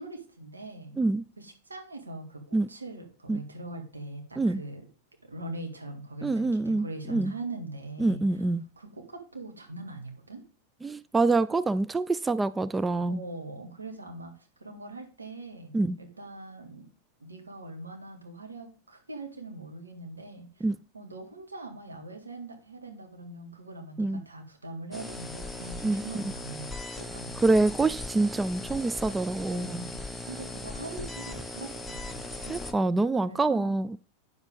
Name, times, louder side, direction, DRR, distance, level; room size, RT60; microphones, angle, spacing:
voice 1, 0.0-1.0 1.4-4.8 5.2-8.5 8.8-10.4 13.1-16.9 17.2-20.7 20.9-26.7 27.0-27.4 29.5-30.0 30.3-32.6 33.2-33.8, right 2 dB, 80° right, 2.1 m, -42 dB
voice 2, 6.2-7.3 8.0-8.6 10.8-13.2 15.7-16.0 20.6-20.8 24.0-24.2 25.8-26.0 27.4-29.9 32.5-34.0, right 3 dB, 10° right, 0.3 m, -26 dB
sound 1, 24.9-32.7, left 2 dB, 5° left, 0.9 m, -39 dB
9.2 x 7.2 x 3.7 m
figure-of-eight pair, 90°, 0 cm